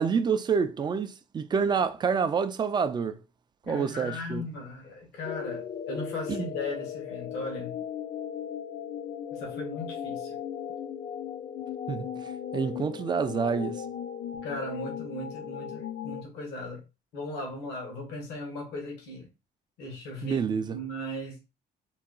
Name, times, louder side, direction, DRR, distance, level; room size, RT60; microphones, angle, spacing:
voice 1, 0.0-3.1 3.7-4.4 6.3-6.5 11.9-12.1 12.5-13.8 20.2-20.8, right 6 dB, 25° right, 0.3 m, -27 dB
voice 2, 3.6-7.8 9.3-10.4 14.4-16.8 17.1-19.3 19.8-20.4 20.7-21.4, left 1 dB, 85° left, 1.0 m, -37 dB
sound 1, 5.2-16.2, left 8 dB, 55° left, 0.4 m, -37 dB
3.8 x 2.2 x 2.4 m
cardioid pair, 110°, 17 cm